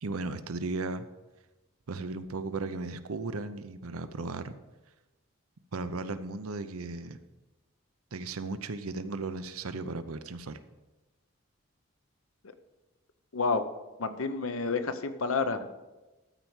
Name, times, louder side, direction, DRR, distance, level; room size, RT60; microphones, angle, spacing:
voice 1, 0.0-1.0 1.9-4.5 5.7-7.2 8.1-10.6, right 3 dB, 90° right, 11 dB, 0.7 m, -36 dB
voice 2, 13.3-13.6 14.0-15.7, left 4 dB, 80° left, 10 dB, 0.8 m, -29 dB
13.0 x 4.6 x 7.2 m, 1.1 s
head